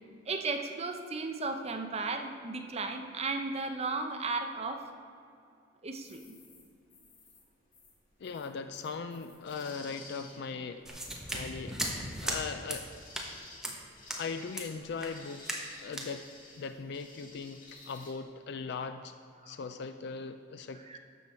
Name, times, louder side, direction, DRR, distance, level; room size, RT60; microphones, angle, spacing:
voice 1, 0.3-4.9 5.8-6.4 19.4-19.5 20.9-21.0, right 3 dB, 35° right, 5 dB, 0.7 m, -35 dB
sound 1, 5.9-18.1, left 3 dB, 45° left, 1.7 m, -54 dB
voice 2, 8.2-11.0 11.3-12.9 14.2-15.5 15.8-16.3 16.6-19.1 19.5-21.0, left 5 dB, 60° left, 9 dB, 0.4 m, -39 dB
sound 2, 10.9-12.4 12.7-12.8 13.1-13.3 13.6-13.8 14.1-14.2 14.5-14.7 15.0-15.2 15.5-15.7 15.9-16.1, right 1 dB, 5° right, 1.1 m, -36 dB
12.0 x 6.9 x 4.4 m, 2.4 s
head